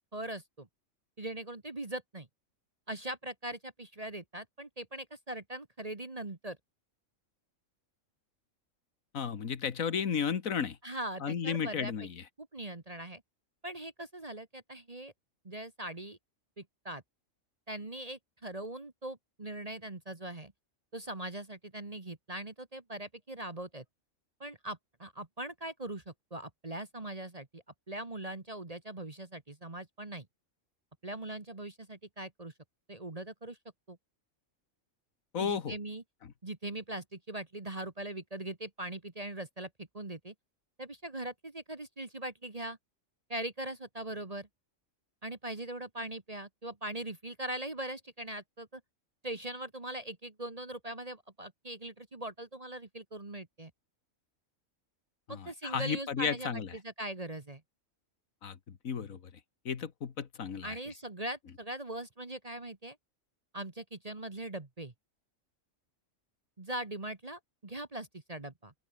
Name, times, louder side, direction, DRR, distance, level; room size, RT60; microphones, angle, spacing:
voice 1, 0.1-0.7 1.2-2.3 2.9-6.6 10.8-11.9 12.4-13.2 13.6-15.1 15.5-16.2 16.6-17.0 17.7-20.5 20.9-23.8 24.4-30.3 31.0-32.5 32.9-33.6 33.9-34.0 35.4-36.0 36.4-40.3 40.8-42.8 43.3-44.5 45.2-48.8 49.2-53.7 55.3-57.6 60.6-63.0 63.5-64.9 66.6-68.7, right 1 dB, 30° right, 1.7 m, -41 dB
voice 2, 9.1-10.8 11.2-12.2 35.3-35.8 55.3-56.7 58.4-59.2 59.7-60.8, left 7 dB, 75° left, 1.9 m, -33 dB
open air
omnidirectional pair, 1.4 m